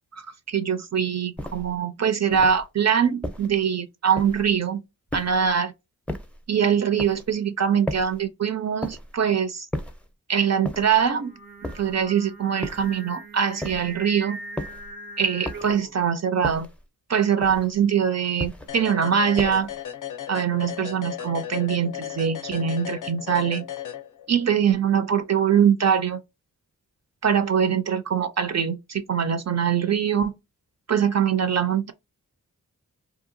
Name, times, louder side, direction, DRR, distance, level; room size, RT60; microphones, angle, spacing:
voice 1, 0.1-4.8 5.1-5.7 6.5-9.7 10.3-11.3 11.7-14.4 15.2-16.7 17.1-19.7 20.3-23.6 24.3-26.2 27.2-30.3 30.9-31.9, right 7 dB, 50° right, 0.4 m, -23 dB
sound 1, 1.4-1.8 2.3-2.7 3.2-3.6 4.2-4.6 5.1-5.5 6.1-6.4 7.0-7.3 7.9-8.3 8.8-9.2 9.7-10.1 10.6-11.1 11.6-12.1 12.6-13.0 13.6-14.0 14.6-14.9 15.4-15.9 16.4-16.8 17.4-17.8 18.4-18.8 19.4-19.8, left 1 dB, 5° left, 0.5 m, -34 dB
Singing, 10.9-16.0, right 2 dB, 85° right, 0.7 m, -41 dB
sound 2, 18.7-24.5, left 10 dB, 60° left, 0.5 m, -35 dB
2.8 x 2.2 x 2.5 m
cardioid pair, 50°, 35 cm